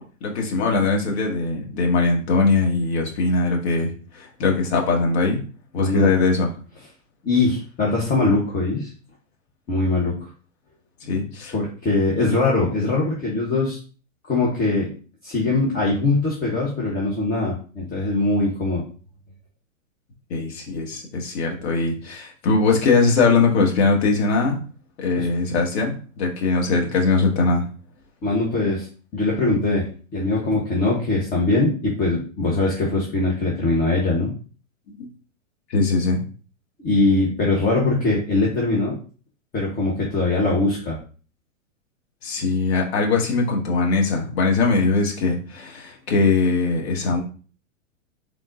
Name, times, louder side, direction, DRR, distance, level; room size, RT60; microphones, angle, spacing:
voice 1, 0.2-5.4 5.7-6.5 11.0-11.5 20.3-24.6 25.0-27.6 30.5-30.6 35.0-35.1 35.7-36.2 42.2-47.2, left 3 dB, 55° left, 1 dB, 1.5 m, -21 dB
voice 2, 5.8-6.1 7.2-8.9 9.7-10.1 11.5-13.8 14.3-14.9 15.2-18.8 25.2-25.3 28.2-28.9 29.1-34.3 36.8-39.0 39.5-41.0, left 2 dB, 20° left, -4 dB, 1.1 m, -22 dB
3.9 x 3.6 x 2.5 m, 0.38 s
hypercardioid pair, 120°, 39 cm